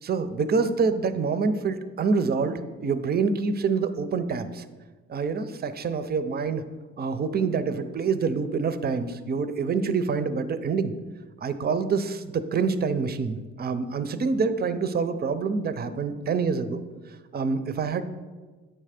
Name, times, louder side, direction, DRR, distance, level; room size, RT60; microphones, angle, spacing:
voice 1, 0.0-4.6 5.1-6.6 7.0-10.9 11.4-16.8 17.3-18.0, right 5 dB, 35° right, 11 dB, 0.5 m, -26 dB
8.3 x 3.3 x 5.0 m, 1.3 s
cardioid pair, 90°, 30 cm